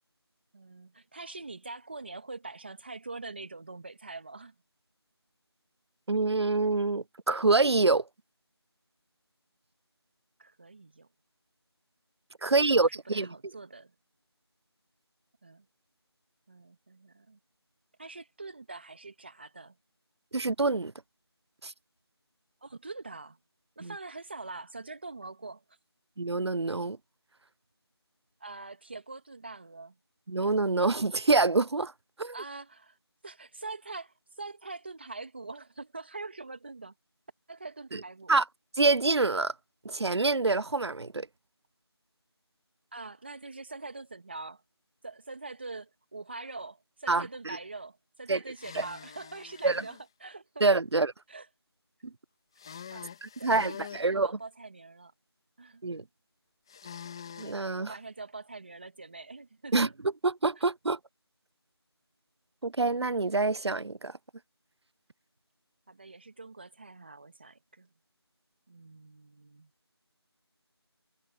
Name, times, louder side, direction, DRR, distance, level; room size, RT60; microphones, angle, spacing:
voice 1, 0.5-4.5 10.4-11.1 12.4-13.9 15.4-15.6 16.5-17.4 18.0-19.8 22.6-23.4 23.8-25.8 28.4-29.9 32.3-33.0 33.2-36.9 37.5-38.3 42.9-44.6 45.0-50.6 51.3-51.5 52.9-53.1 53.4-55.1 55.6-56.0 57.8-59.9 65.9-67.9 68.7-69.7, right 3 dB, 25° right, 1.7 m, -44 dB
voice 2, 6.1-8.0 12.4-13.3 20.3-20.9 21.6-21.7 23.8-23.9 26.2-27.0 30.3-31.9 32.2-32.3 37.9-38.0 38.3-38.4 38.8-39.5 39.8-41.3 47.1-47.3 48.3-48.4 48.8-48.9 49.6-49.8 50.6-51.1 52.0-52.1 53.2-54.3 55.8-56.0 57.4-57.9 59.7-59.9 60.2-61.0 62.6-64.1, right 3 dB, 75° right, 0.7 m, -26 dB
sound 1, 48.5-50.0 52.6-54.1 56.7-57.6, left 8 dB, 10° left, 2.4 m, -45 dB
figure-of-eight pair, 175°, 14 cm